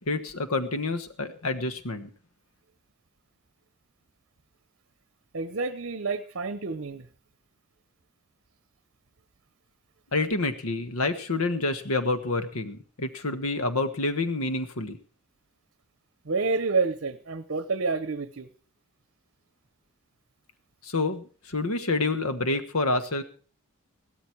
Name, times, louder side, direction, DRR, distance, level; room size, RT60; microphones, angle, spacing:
voice 1, 0.0-2.1 10.1-15.0 20.8-23.2, left 2 dB, 70° left, 11 dB, 1.4 m, -28 dB
voice 2, 5.3-7.1 16.3-18.5, right 4 dB, 55° right, 13 dB, 0.8 m, -28 dB
15.5 x 13.0 x 4.6 m, 0.39 s
head